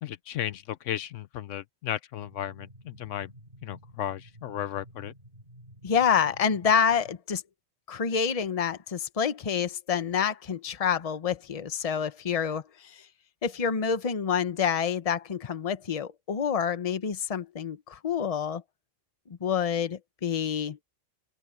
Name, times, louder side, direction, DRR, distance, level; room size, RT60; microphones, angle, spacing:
voice 1, 0.0-3.3 3.6-5.1, left 11 dB, 75° left, 0.9 m, -35 dB
sound 1, 2.2-7.2, right 1 dB, 40° right, 7.5 m, -52 dB
voice 2, 5.8-7.4 7.9-13.0 13.4-18.6 19.4-20.8, left 7 dB, 35° left, 0.8 m, -27 dB
open air
omnidirectional pair, 1.3 m